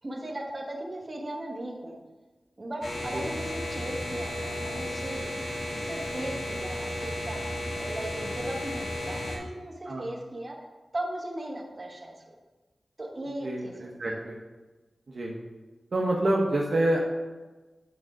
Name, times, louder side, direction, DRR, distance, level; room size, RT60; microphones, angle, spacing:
voice 1, 0.0-2.0 2.6-5.3 5.7-10.6 10.9-12.3 13.0-14.2, right 1 dB, 35° right, 0 dB, 1.3 m, -37 dB
sound 1, 2.8-9.4, left 1 dB, 65° left, 1.7 m, -34 dB
voice 2, 13.4-14.3 15.1-15.3 15.9-17.0, right 1 dB, 60° right, -2 dB, 0.9 m, -27 dB
9.2 x 3.7 x 4.9 m, 1.2 s
wide cardioid pair, 100°, 0 cm